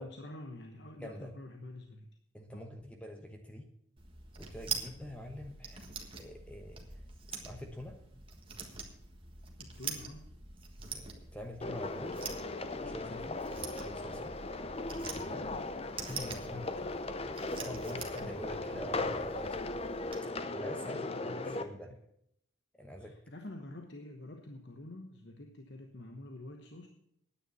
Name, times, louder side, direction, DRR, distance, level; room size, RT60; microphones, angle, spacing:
voice 1, 0.0-2.1 2.5-2.7 9.6-10.3 20.9-22.0 23.0-26.9, left 1 dB, 55° left, 4 dB, 1.1 m, -48 dB
voice 2, 1.0-1.3 2.3-3.7 4.4-5.9 6.2-6.8 7.3-8.0 10.9-12.2 12.8-13.4 13.8-14.3 15.0-15.5 16.0-16.9 17.6-19.6 20.2-21.9 22.8-23.2, equal, 5° left, 4 dB, 0.9 m, -45 dB
sound 1, 4.0-20.2, right 5 dB, 25° right, 1.6 m, -45 dB
sound 2, 11.6-21.6, left 2 dB, 30° left, 0.7 m, -38 dB
9.9 x 9.4 x 6.8 m, 0.74 s
head